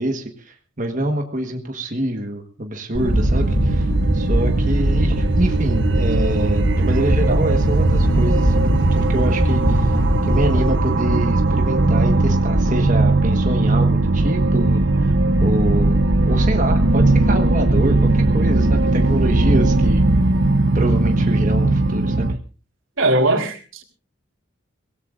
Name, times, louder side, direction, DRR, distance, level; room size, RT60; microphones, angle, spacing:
voice 1, 0.0-15.1 15.4-16.0 16.2-20.0 20.7-22.4, right 1 dB, 40° right, 3 dB, 1.4 m, -25 dB
sound 1, 2.9-10.7, equal, 50° left, 2.9 m, -21 dB
sound 2, 3.0-22.4, right 2 dB, 65° right, 0.8 m, -18 dB
voice 2, 23.0-23.8, right 1 dB, 90° right, 3 dB, 3.4 m, -19 dB
24.5 x 17.5 x 2.5 m, 0.37 s
head